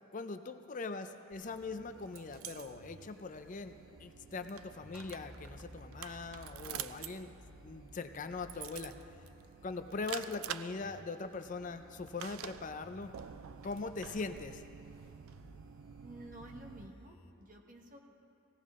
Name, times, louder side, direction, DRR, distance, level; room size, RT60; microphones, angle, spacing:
voice 1, 0.1-7.3 7.6-8.9 9.6-13.1 13.6-14.6, left 3 dB, 40° left, 8 dB, 0.5 m, -41 dB
sound 1, 1.3-17.3, equal, 85° left, 1.2 m, -60 dB
sound 2, 1.5-16.9, right 10 dB, 90° right, 0.4 m, -49 dB
sound 3, 4.9-9.3, right 1 dB, 5° right, 1.3 m, -57 dB
voice 2, 16.0-18.1, right 1 dB, 40° right, 2 dB, 1.3 m, -51 dB
17.5 x 17.0 x 3.6 m, 2.7 s
head